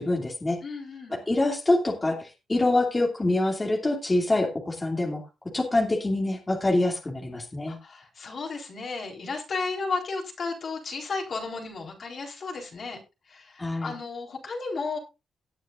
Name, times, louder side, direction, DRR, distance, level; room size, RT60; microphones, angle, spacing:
voice 1, 0.0-0.6 1.1-5.2 5.5-7.8 13.6-13.9, left 2 dB, 20° left, 1 dB, 2.8 m, -25 dB
voice 2, 0.6-1.2 7.7-13.0 13.3-15.0, left 4 dB, 50° left, 2 dB, 4.1 m, -34 dB
17.5 x 8.9 x 2.6 m, 0.26 s
cardioid pair, 85°, 0 cm